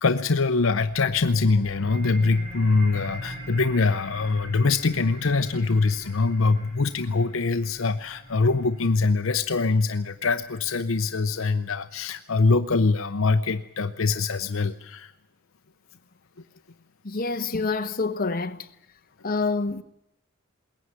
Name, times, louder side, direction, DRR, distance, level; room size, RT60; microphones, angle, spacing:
voice 1, 0.0-15.1, left 3 dB, 65° left, 0.8 m, -23 dB
sound 1, 0.8-11.6, equal, 30° right, 5.5 m, -43 dB
voice 2, 17.0-18.7 19.2-19.8, left 3 dB, 45° left, 1.2 m, -27 dB
21.5 x 17.5 x 9.7 m
head